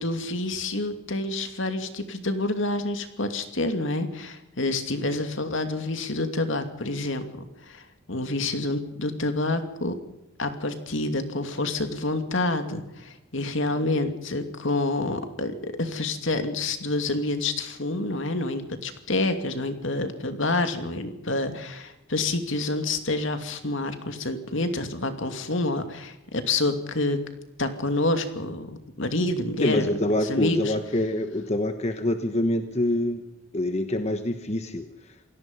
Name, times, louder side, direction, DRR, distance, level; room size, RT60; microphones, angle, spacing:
voice 1, 0.0-7.3 7.7-7.8 8.1-10.0 10.4-27.2 27.6-28.7 29.0-29.9 30.2-30.8, left 2 dB, 60° left, 7 dB, 2.6 m, -28 dB
voice 2, 29.6-33.2 33.5-34.9, left 1 dB, 30° left, 8 dB, 1.2 m, -26 dB
27.5 x 18.0 x 5.5 m, 0.89 s
head